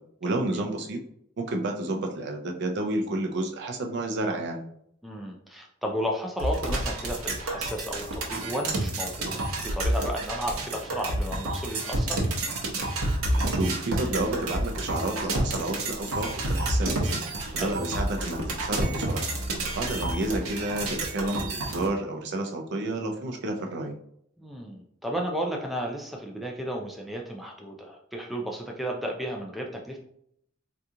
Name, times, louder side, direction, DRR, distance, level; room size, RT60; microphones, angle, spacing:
voice 1, 0.2-1.0 1.4-4.6 13.5-17.2 17.5-19.3 19.7-23.9, right 2 dB, 55° right, 3 dB, 0.5 m, -30 dB
voice 2, 5.0-12.2 17.6-17.8 24.4-30.0, equal, ahead, 0 dB, 0.3 m, -33 dB
sound 1, 6.4-21.9, right 1 dB, 85° right, 0.8 m, -29 dB
2.8 x 2.3 x 3.6 m, 0.71 s
head